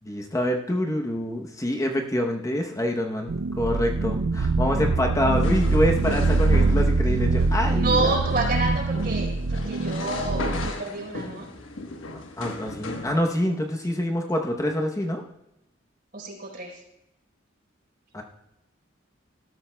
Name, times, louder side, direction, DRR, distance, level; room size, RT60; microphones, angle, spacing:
voice 1, 0.0-8.1 12.4-15.2 18.1-18.2, left 1 dB, 15° left, 2 dB, 0.8 m, -26 dB
sound 1, 3.3-10.7, right 3 dB, 75° right, 0.5 m, -23 dB
sound 2, 5.3-13.1, left 2 dB, 85° left, 1.2 m, -36 dB
voice 2, 7.7-11.5 16.1-16.8, right 2 dB, 50° right, 0 dB, 3.9 m, -29 dB
18.0 x 12.5 x 2.2 m, 0.90 s
head